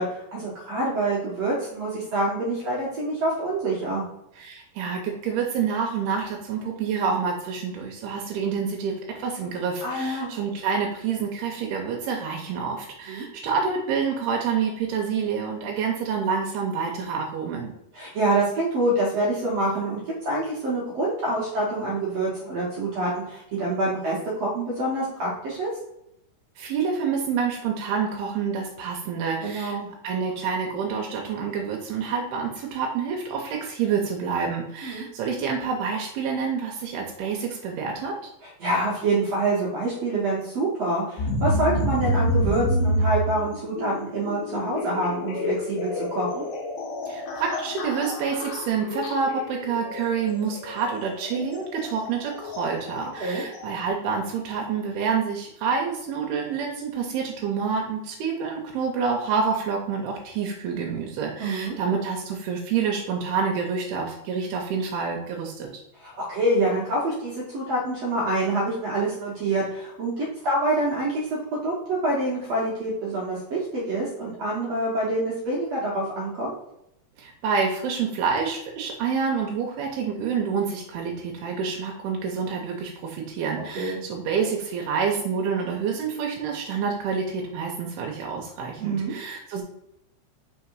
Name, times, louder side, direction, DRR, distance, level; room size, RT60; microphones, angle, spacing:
voice 1, 0.0-4.0 9.8-10.3 13.1-13.3 17.9-25.7 29.4-29.9 34.8-35.0 38.4-46.4 53.2-53.4 61.4-61.8 66.0-76.5 83.7-84.0 88.8-89.1, right 2 dB, 65° right, -6 dB, 1.6 m, -26 dB
voice 2, 4.4-17.7 26.6-29.8 30.0-38.1 47.1-65.7 77.2-89.6, right 6 dB, 85° right, 1 dB, 2.5 m, -28 dB
sound 1, 41.2-53.9, equal, 70° left, 2.5 m, -29 dB
5.9 x 3.7 x 4.5 m, 0.81 s
omnidirectional pair, 4.8 m